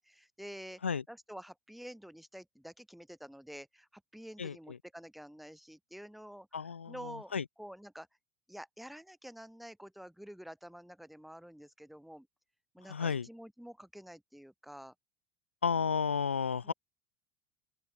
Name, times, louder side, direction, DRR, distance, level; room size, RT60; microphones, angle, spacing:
voice 1, 0.0-6.5 6.9-7.3 7.6-8.1 8.5-12.3 12.7-14.9 16.6-16.7, equal, ahead, 4.8 m, -49 dB
voice 2, 4.4-4.8 6.5-7.4 12.9-13.3 15.6-16.7, left 6 dB, 85° left, 1.3 m, -32 dB
open air
figure-of-eight pair, 75°, 6 cm